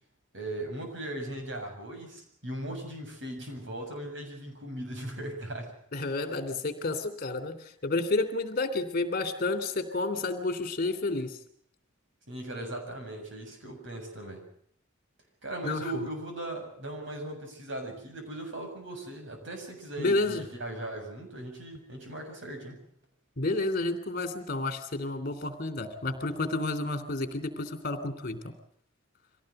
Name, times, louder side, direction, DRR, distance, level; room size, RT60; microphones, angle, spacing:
voice 1, 0.3-5.8 12.3-14.5 15.4-22.8, right 1 dB, 60° right, 4 dB, 7.3 m, -38 dB
voice 2, 5.9-11.4 15.6-16.1 20.0-20.4 23.4-28.5, left 2 dB, 45° left, 9 dB, 3.1 m, -30 dB
24.5 x 17.5 x 7.9 m, 0.66 s
head